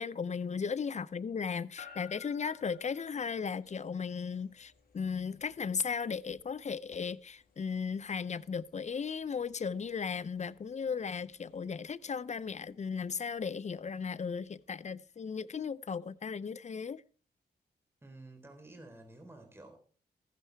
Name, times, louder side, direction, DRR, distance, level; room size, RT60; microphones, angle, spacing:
voice 1, 0.0-17.0, left 6 dB, 40° left, 0.6 m, -36 dB
sound 1, 1.8-16.0, left 8 dB, 60° left, 4.1 m, -60 dB
voice 2, 18.0-19.8, right 2 dB, 15° right, 3.7 m, -51 dB
15.0 x 10.5 x 4.5 m
cardioid pair, 75°, 17 cm